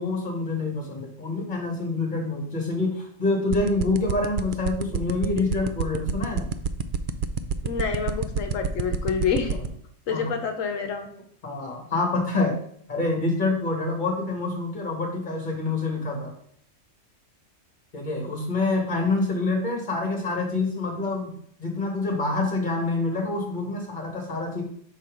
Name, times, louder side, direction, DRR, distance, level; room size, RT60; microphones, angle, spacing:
voice 1, 0.0-6.5 9.5-9.6 10.1-10.3 11.4-12.6 12.9-16.3 17.9-21.3 21.6-24.6, left 3 dB, 35° left, 1 dB, 1.9 m, -26 dB
sound 1, 3.5-9.7, right 7 dB, 65° right, 0.5 m, -25 dB
voice 2, 7.6-9.6 10.1-11.1, left 6 dB, 80° left, 6 dB, 1.2 m, -27 dB
6.1 x 4.2 x 4.9 m, 0.65 s
omnidirectional pair, 1.3 m